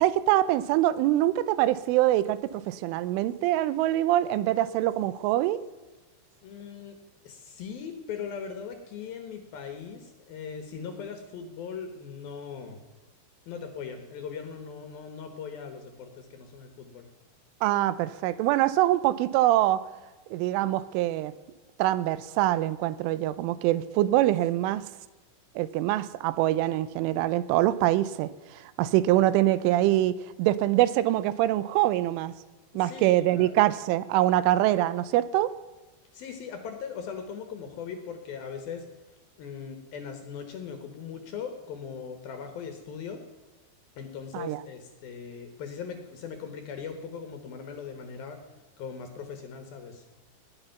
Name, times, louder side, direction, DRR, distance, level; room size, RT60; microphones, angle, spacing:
voice 1, 0.0-5.6 17.6-19.8 20.3-21.3 21.8-24.9 25.6-32.3 32.7-35.5 44.3-44.6, right 14 dB, 90° right, 16 dB, 3.2 m, -24 dB
voice 2, 6.4-7.0 7.2-12.8 13.5-17.1 32.7-33.5 36.1-38.9 39.4-43.2 44.0-48.4 48.8-50.0, left 6 dB, 65° left, 7 dB, 2.6 m, -39 dB
19.0 x 9.8 x 5.8 m, 1.2 s
omnidirectional pair, 5.5 m